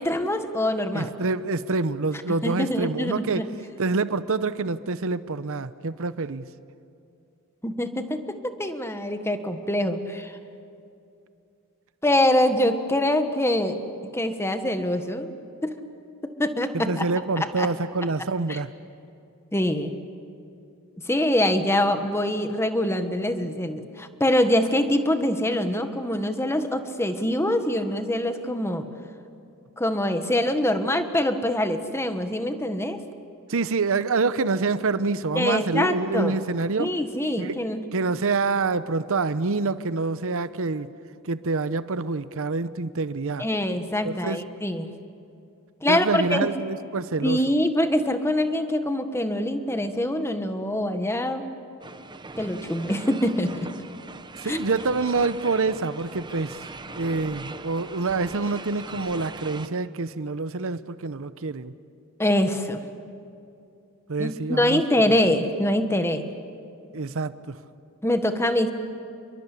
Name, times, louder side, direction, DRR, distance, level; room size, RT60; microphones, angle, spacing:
voice 1, 0.0-1.1 2.4-3.5 7.6-10.4 12.0-13.8 14.1-15.3 15.6-15.7 16.4-17.1 17.6-17.7 18.5-18.6 19.5-19.9 21.0-28.9 29.8-33.0 35.3-36.4 36.8-37.8 43.4-44.9 45.8-46.5 47.2-51.4 52.4-53.7 54.4-54.6 62.2-62.8 64.2-66.3 68.0-68.7, left 1 dB, 10° left, 8 dB, 1.5 m, -24 dB
voice 2, 0.9-3.5 3.8-6.5 16.7-18.7 33.5-36.9 37.4-37.6 37.9-40.9 41.2-43.5 44.0-44.4 45.9-47.4 54.4-56.6 56.9-61.7 64.1-65.0 66.9-67.6, right 3 dB, 65° right, 14 dB, 0.8 m, -26 dB
sound 1, 51.8-59.7, right 3 dB, 20° right, 0.9 m, -40 dB
29.5 x 22.5 x 8.4 m, 2.7 s
head